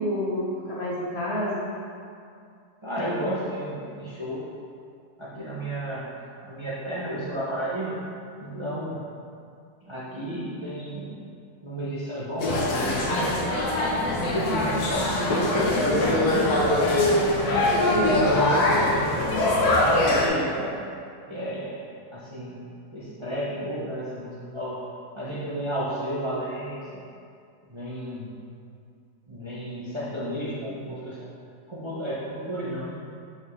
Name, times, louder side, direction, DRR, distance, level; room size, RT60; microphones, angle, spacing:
voice 1, 0.0-1.7 5.3-5.5 8.5-8.8 17.9-18.3, equal, 50° left, -6 dB, 0.8 m, -29 dB
voice 2, 2.8-4.4 5.2-6.1 6.4-8.0 8.4-9.0 9.8-11.1 11.6-13.3 14.0-17.1 17.8-19.2 19.5-20.9 21.3-21.8 22.1-22.6 22.9-24.8 25.1-27.0 27.7-28.3 29.3-31.3 31.7-32.9, equal, 35° right, -8 dB, 0.4 m, -32 dB
sound 1, 12.4-20.3, left 1 dB, 65° left, 1.3 m, -23 dB
5.7 x 5.3 x 3.2 m, 2.4 s
omnidirectional pair, 1.9 m